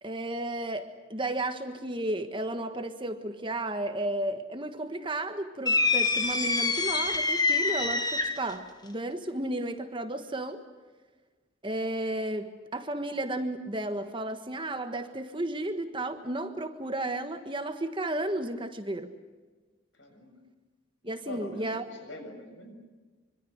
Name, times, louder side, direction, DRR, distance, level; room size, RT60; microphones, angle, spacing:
voice 1, 0.0-10.6 11.6-19.1 21.0-21.8, right 1 dB, 25° right, 8 dB, 1.5 m, -33 dB
sound 1, 5.7-8.5, left 3 dB, 20° left, 1.6 m, -26 dB
voice 2, 19.9-20.4 21.2-22.7, left 1 dB, 65° left, 5 dB, 7.2 m, -43 dB
25.5 x 25.5 x 6.6 m, 1.3 s
head